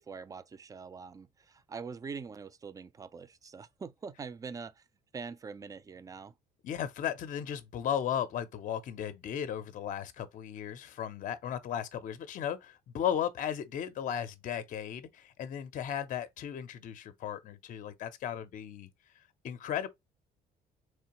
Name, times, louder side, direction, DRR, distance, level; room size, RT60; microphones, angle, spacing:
voice 1, 0.0-4.8 5.1-6.3, right 5 dB, 20° right, 0.3 m, -44 dB
voice 2, 6.6-18.9 19.4-19.9, left 9 dB, 50° left, 0.5 m, -35 dB
3.7 x 3.2 x 2.9 m
cardioid pair, 110°, 17 cm